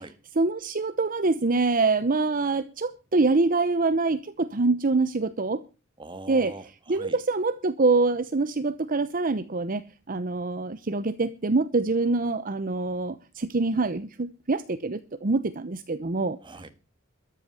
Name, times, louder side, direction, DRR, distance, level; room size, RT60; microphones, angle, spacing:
voice 1, 0.4-5.6 6.3-6.5 6.9-9.8 10.1-16.4, right 3 dB, 40° right, 0.8 m, -25 dB
voice 2, 6.0-7.2 16.4-16.7, right 2 dB, 25° right, 1.6 m, -42 dB
13.5 x 8.5 x 7.9 m
head